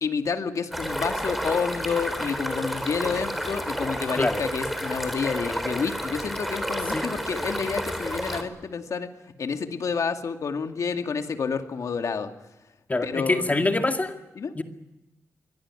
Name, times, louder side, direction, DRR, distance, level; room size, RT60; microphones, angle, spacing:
voice 1, 0.0-9.1 9.4-12.3 13.0-13.6 14.4-14.5, left 5 dB, 65° left, 6 dB, 2.4 m, -29 dB
sound 1, 0.7-8.4, equal, ahead, 4.1 m, -30 dB
voice 2, 12.9-14.2 14.5-14.6, left 2 dB, 25° left, 5 dB, 2.2 m, -24 dB
24.0 x 18.0 x 9.9 m, 0.96 s
cardioid pair, 75°, 6 cm